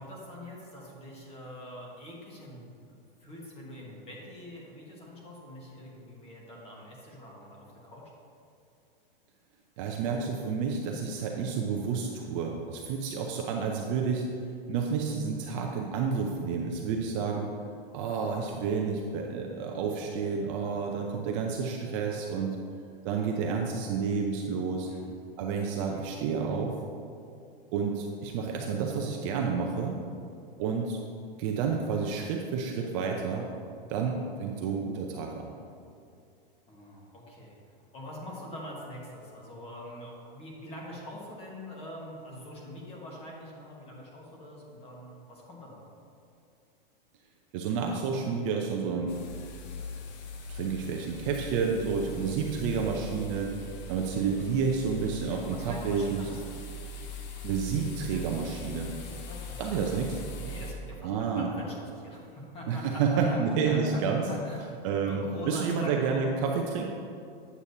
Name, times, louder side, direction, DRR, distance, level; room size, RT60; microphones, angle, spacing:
voice 1, 0.0-8.1 24.9-25.1 36.6-37.6 37.9-45.8 55.4-56.6 59.0-59.6 60.4-64.0 64.3-64.6 65.0-66.2, left 1 dB, 20° left, -2 dB, 1.4 m, -44 dB
voice 2, 9.8-14.3 14.7-17.5 17.9-22.6 23.0-24.9 25.4-26.7 27.7-30.0 30.6-31.0 31.4-33.5 33.9-35.5 47.5-49.1 50.5-53.5 53.9-56.2 57.4-59.0 59.6-60.2 61.0-61.5 62.7-64.2 64.8-66.8, right 5 dB, 35° right, 1 dB, 0.5 m, -30 dB
sound 1, 49.1-60.7, left 1 dB, 50° left, 0.9 m, -41 dB
8.5 x 8.2 x 2.7 m, 2.4 s
supercardioid pair, 155°, 29 cm